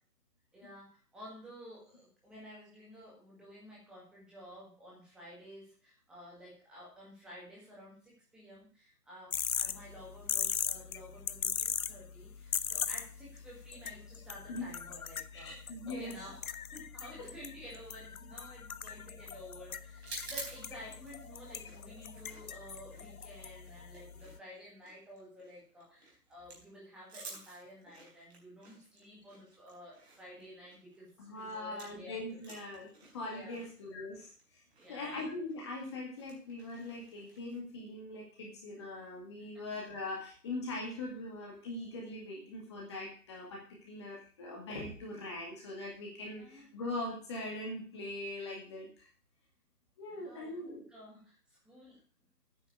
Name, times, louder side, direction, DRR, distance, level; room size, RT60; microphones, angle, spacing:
voice 1, 0.5-15.5 15.9-31.1 31.4-32.5 33.3-33.6 34.8-35.2 39.4-39.5 46.3-46.7 50.1-52.0, equal, ahead, -6 dB, 1.7 m, -52 dB
sound 1, 9.3-24.4, left 7 dB, 60° left, 0.7 m, -40 dB
voice 2, 15.3-16.1 17.2-17.3 31.2-34.3 34.9-49.1 50.0-50.8, left 2 dB, 15° left, -2 dB, 2.1 m, -41 dB
sound 2, 20.0-32.1 32.3-37.6, right 3 dB, 40° right, 4.2 m, -52 dB
9.6 x 6.0 x 8.1 m, 0.40 s
figure-of-eight pair, 165°, 48 cm